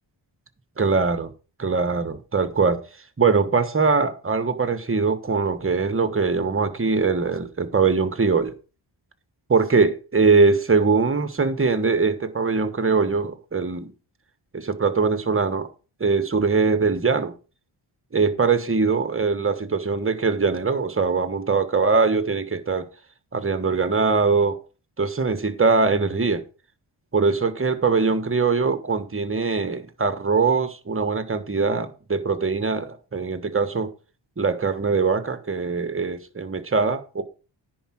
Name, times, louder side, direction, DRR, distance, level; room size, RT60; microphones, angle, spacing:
voice 1, 0.8-1.3 1.6-2.8 3.2-8.5 9.5-13.9 14.5-15.7 16.0-17.3 18.1-22.9 23.3-24.6 25.0-26.4 27.1-33.9 34.4-37.2, right 4 dB, 25° right, 1.3 m, -22 dB
10.0 x 4.8 x 7.5 m
wide cardioid pair, 85°, 48 cm